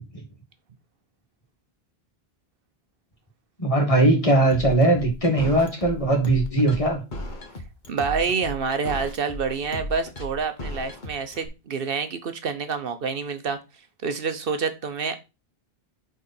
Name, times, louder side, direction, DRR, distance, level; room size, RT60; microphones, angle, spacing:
voice 1, 3.6-7.0, right 2 dB, 35° left, 2 dB, 2.0 m, -20 dB
sound 1, 4.5-11.5, left 1 dB, 50° left, 1.3 m, -35 dB
voice 2, 7.9-13.6 14.0-15.1, right 5 dB, 65° right, 8 dB, 1.0 m, -27 dB
9.0 x 3.7 x 4.2 m, 0.28 s
omnidirectional pair, 1.0 m